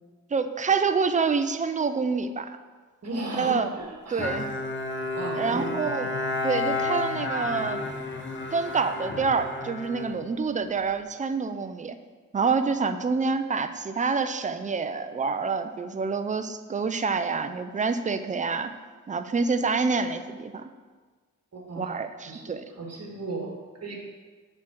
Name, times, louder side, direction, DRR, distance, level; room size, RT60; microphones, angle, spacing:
voice 1, 0.3-2.6 3.3-3.7 4.1-4.5 5.3-6.1 6.4-7.8 8.5-12.0 12.3-18.7 19.1-20.7 21.8-22.6, right 5 dB, 25° right, 9 dB, 0.4 m, -27 dB
voice 2, 3.0-4.4 5.1-5.8 21.5-21.9 22.3-24.0, right 2 dB, 50° right, -1 dB, 1.9 m, -35 dB
Bowed string instrument, 4.2-10.9, left 2 dB, 35° left, 0.9 m, -31 dB
7.6 x 4.4 x 6.3 m, 1.4 s
wide cardioid pair, 120°, 33 cm